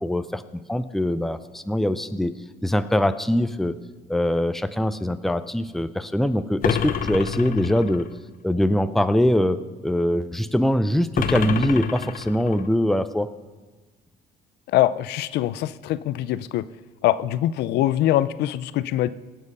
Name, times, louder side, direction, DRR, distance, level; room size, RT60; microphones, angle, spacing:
voice 1, 0.0-2.3 2.6-3.7 4.1-8.1 8.4-13.3, left 1 dB, ahead, 11 dB, 0.5 m, -23 dB
sound 1, 6.6-8.1 11.2-12.7, left 8 dB, 55° left, 0.9 m, -27 dB
voice 2, 14.7-16.6 17.0-19.1, left 13 dB, 80° left, 15 dB, 0.5 m, -23 dB
17.5 x 7.5 x 5.4 m, 1.3 s
cardioid pair, 110°, 17 cm